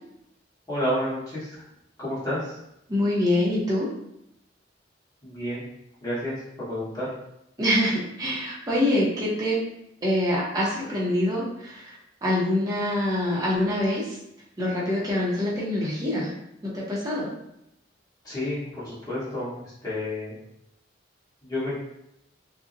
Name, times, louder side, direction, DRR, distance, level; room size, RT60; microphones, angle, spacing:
voice 1, 0.7-1.6 2.0-2.6 5.2-5.7 6.0-7.1 18.2-20.3 21.4-21.8, left 1 dB, 20° left, -10 dB, 1.1 m, -30 dB
voice 2, 2.9-3.9 7.6-9.6 10.0-14.2 14.6-16.3 16.7-17.3, left 1 dB, 20° right, -5 dB, 0.6 m, -25 dB
2.6 x 2.0 x 2.5 m, 0.82 s
head